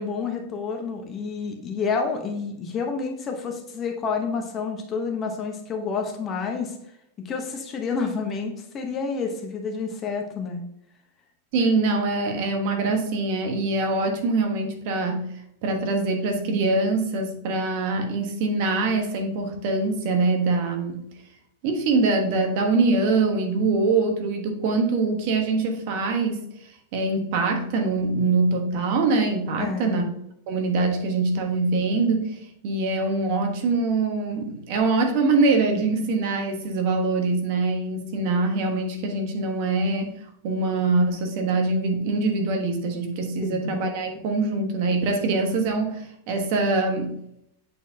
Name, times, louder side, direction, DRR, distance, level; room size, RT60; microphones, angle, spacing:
voice 1, 0.0-6.8 7.2-10.6 29.6-30.1 43.4-43.7, left 5 dB, 25° left, 4 dB, 0.9 m, -29 dB
voice 2, 11.5-15.3 15.6-21.0 21.6-26.4 26.9-30.0 30.5-40.1 40.4-47.1, right 3 dB, 50° right, 4 dB, 1.2 m, -24 dB
8.3 x 4.4 x 2.8 m, 0.75 s
supercardioid pair, 155°, 0 cm